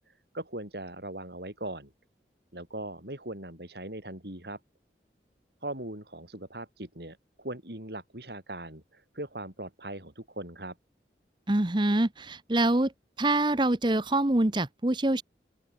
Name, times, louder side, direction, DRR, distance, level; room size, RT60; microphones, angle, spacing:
voice 1, 0.3-1.9 2.5-4.6 5.6-10.7, right 1 dB, 70° right, 6.6 m, -39 dB
voice 2, 11.5-12.9 13.2-15.2, right 1 dB, 25° right, 0.9 m, -25 dB
open air
head